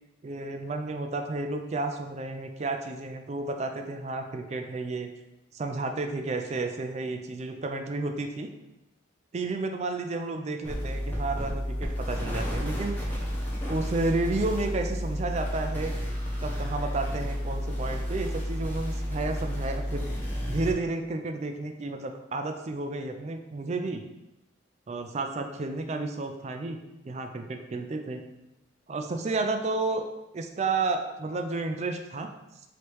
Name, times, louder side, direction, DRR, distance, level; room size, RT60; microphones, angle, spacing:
voice 1, 0.2-5.1 5.5-8.5 9.3-13.1 13.7-15.9 16.4-20.1 20.5-24.0 24.9-26.8 27.0-28.2 28.9-30.0 30.3-32.3, right 3 dB, 35° right, 5 dB, 0.3 m, -31 dB
sound 1, 10.6-20.7, equal, 10° left, 0.8 m, -31 dB
3.3 x 3.0 x 4.4 m, 0.96 s
head